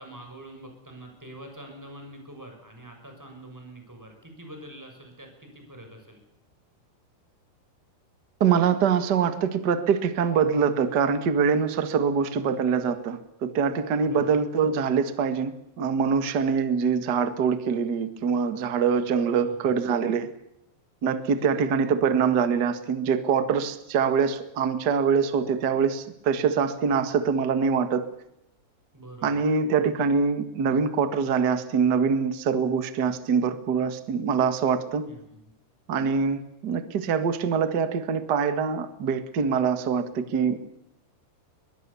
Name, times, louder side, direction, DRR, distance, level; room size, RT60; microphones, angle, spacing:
voice 1, 0.0-6.2 14.0-14.3 19.3-19.8 28.9-29.4 35.1-35.4, right 1 dB, 5° right, 4 dB, 6.3 m, -45 dB
voice 2, 8.4-20.3 21.0-28.1 29.2-35.1 35.9-40.6, right 6 dB, 55° right, 10 dB, 1.1 m, -24 dB
22.5 x 22.0 x 7.1 m, 0.80 s
omnidirectional pair, 4.9 m